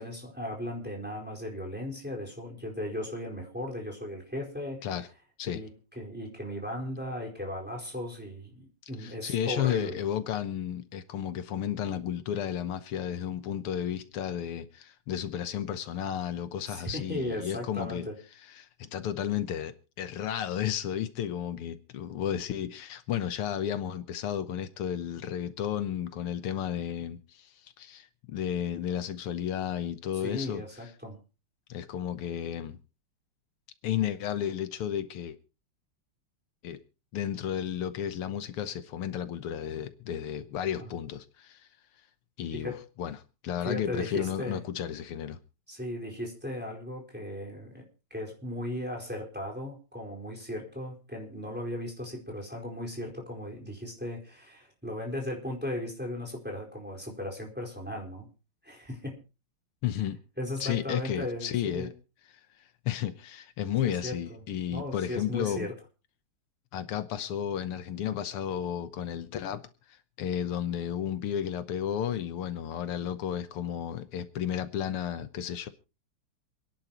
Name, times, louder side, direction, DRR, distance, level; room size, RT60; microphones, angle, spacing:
voice 1, 0.0-4.9 5.5-5.7 6.0-10.0 16.7-18.2 30.2-31.2 40.8-40.9 42.5-42.8 43.6-44.6 45.7-58.3 58.6-59.2 60.4-61.9 63.8-64.4 64.7-65.7, left 1 dB, 5° right, 4.4 m, -37 dB
voice 2, 9.0-18.0 18.6-30.6 31.7-32.8 33.8-35.4 36.6-36.8 37.1-41.7 42.4-43.2 43.4-45.4 59.8-60.2 60.6-61.9 62.9-65.7 66.7-69.6 69.9-75.7, left 9 dB, 80° left, 1.9 m, -33 dB
28.0 x 10.5 x 3.0 m
omnidirectional pair, 2.4 m